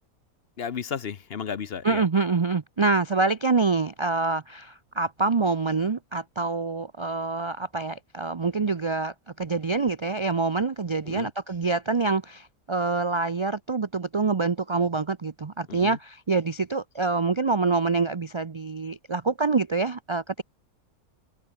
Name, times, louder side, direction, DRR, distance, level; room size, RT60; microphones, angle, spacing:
voice 1, 0.6-2.0 11.1-11.3 15.7-16.0, left 7 dB, 50° left, 1.0 m, -33 dB
voice 2, 1.8-20.4, right 4 dB, 50° right, 0.3 m, -26 dB
omnidirectional pair, 1.5 m